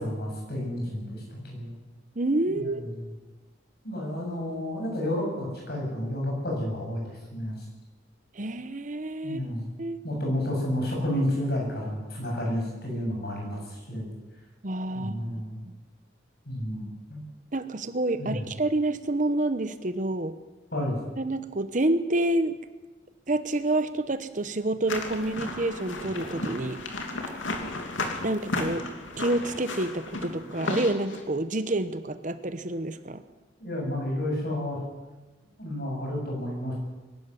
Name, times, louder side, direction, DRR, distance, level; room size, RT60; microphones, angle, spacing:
voice 1, 0.0-1.8 2.5-3.0 3.8-7.6 9.2-9.7 10.0-14.1 14.9-15.6 16.5-17.2 18.2-18.5 20.7-21.0 33.6-34.8 35.6-36.7, left 1 dB, 55° left, -1 dB, 8.0 m, -31 dB
voice 2, 2.2-3.0 8.3-9.4 9.8-10.0 14.6-15.1 15.7-15.8 17.5-20.4 21.2-22.6 23.3-26.8 28.2-28.8 29.2-33.2, right 2 dB, 40° right, 11 dB, 0.9 m, -28 dB
sound 1, 24.9-31.2, left 2 dB, 85° left, 2.9 m, -34 dB
22.0 x 12.5 x 9.7 m, 1.2 s
head